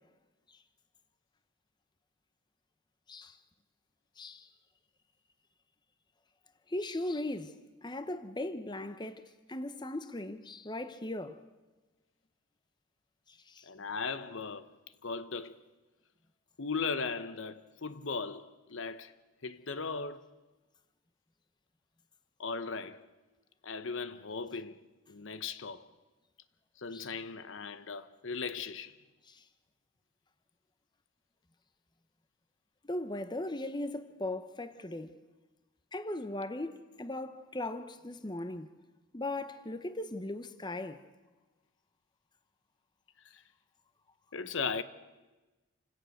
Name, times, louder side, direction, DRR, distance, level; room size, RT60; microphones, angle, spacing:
voice 1, 4.2-4.5 6.7-9.2 9.5-11.4 13.3-13.7 26.9-27.1 29.3-29.4 32.8-35.2 35.9-38.7 39.1-41.0, left 1 dB, 20° left, 0.9 m, -38 dB
voice 2, 13.6-14.7 15.0-15.6 16.6-19.1 19.4-20.2 22.4-23.1 23.6-24.8 25.1-25.9 26.8-29.0 43.3-43.4 44.3-44.8, left 4 dB, 70° left, 0.9 m, -37 dB
28.0 x 17.0 x 6.5 m
head